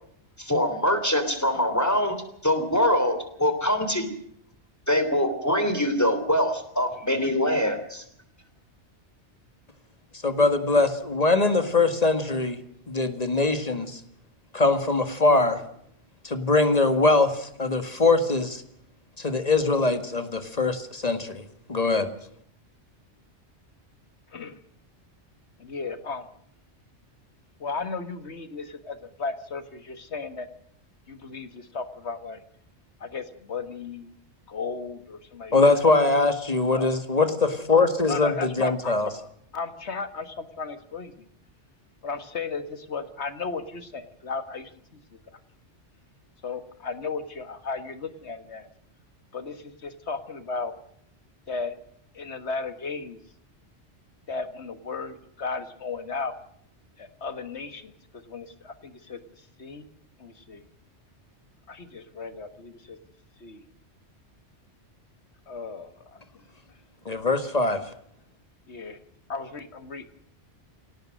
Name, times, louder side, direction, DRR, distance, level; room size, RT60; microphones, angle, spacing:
voice 1, 0.4-4.1 4.9-8.0, left 1 dB, 15° left, 9 dB, 3.3 m, -24 dB
voice 2, 10.2-12.6 12.9-14.0 14.5-15.6 16.2-18.6 19.2-21.4 21.7-22.1 35.5-39.1 67.1-67.8, left 3 dB, 35° left, 9 dB, 2.0 m, -22 dB
voice 3, 25.6-26.3 27.6-30.5 31.1-32.4 33.0-34.1 34.5-35.8 36.7-36.9 38.1-38.9 39.5-41.1 42.0-44.7 46.4-48.7 49.3-50.7 51.5-51.8 52.1-53.2 54.3-56.4 57.0-59.2 59.6-59.9 60.2-60.6 61.7-63.0 63.4-63.6 65.5-66.2 68.7-69.0 69.3-70.1, left 4 dB, 70° left, 10 dB, 1.9 m, -35 dB
25.0 x 17.5 x 6.4 m, 0.69 s
omnidirectional pair, 1.2 m